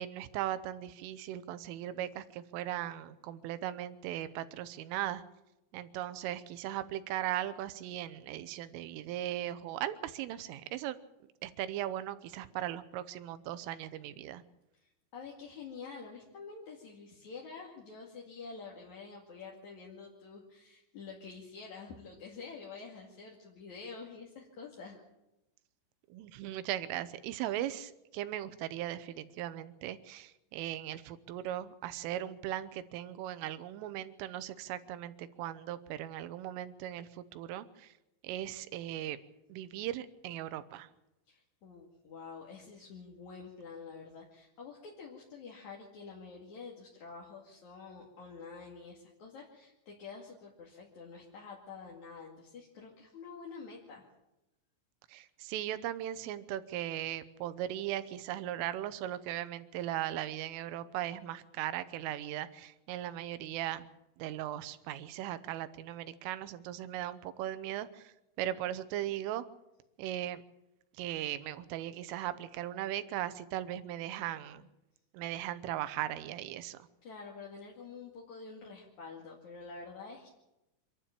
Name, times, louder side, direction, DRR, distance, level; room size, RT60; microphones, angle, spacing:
voice 1, 0.0-5.2 5.7-11.0 11.4-14.4 26.1-37.9 38.2-39.2 39.5-40.9 55.1-63.9 64.2-69.5 70.0-70.4 71.0-74.7 75.1-76.8, right 12 dB, 90° right, 13 dB, 3.6 m, -38 dB
voice 2, 14.8-25.0 41.3-54.0 77.0-80.3, left 5 dB, 45° left, -2 dB, 2.9 m, -48 dB
26.0 x 12.0 x 8.7 m, 0.94 s
omnidirectional pair, 5.6 m